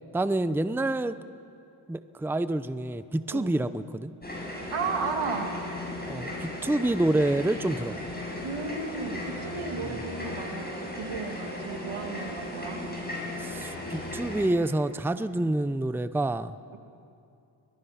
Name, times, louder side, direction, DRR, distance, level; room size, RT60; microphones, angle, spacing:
voice 1, 0.1-1.2 1.9-4.1 6.1-7.9 9.8-10.0 13.4-16.5, right 2 dB, 5° right, 13 dB, 0.7 m, -28 dB
sound 1, 4.2-14.5, left 1 dB, 20° left, 6.2 m, -36 dB
voice 2, 4.7-5.5 8.4-12.8, right 4 dB, 80° right, 3 dB, 2.3 m, -34 dB
22.5 x 21.0 x 5.8 m, 2.6 s
cardioid pair, 50°, 48 cm